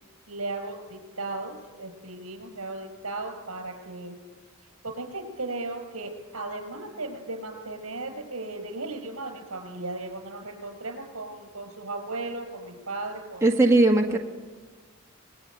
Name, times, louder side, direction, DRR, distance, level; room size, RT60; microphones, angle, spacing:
voice 1, 0.3-4.1 4.8-13.5 14.1-14.2, right 2 dB, 70° right, 5 dB, 5.9 m, -36 dB
voice 2, 13.4-14.2, right 2 dB, 15° right, 1 dB, 1.3 m, -19 dB
24.0 x 21.5 x 9.4 m, 1.4 s
head